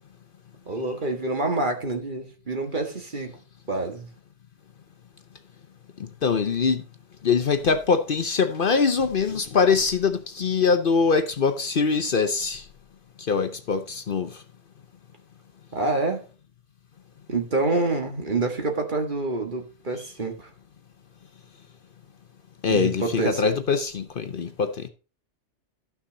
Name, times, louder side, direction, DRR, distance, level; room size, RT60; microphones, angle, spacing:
voice 1, 0.7-3.4 3.7-4.1 15.7-16.2 17.3-20.5 22.7-23.4, right 3 dB, 45° right, 1.8 m, -27 dB
voice 2, 6.0-6.8 7.2-12.6 13.3-14.3 22.6-24.9, left 5 dB, 55° left, 0.9 m, -23 dB
12.5 x 6.1 x 3.9 m
omnidirectional pair, 1.2 m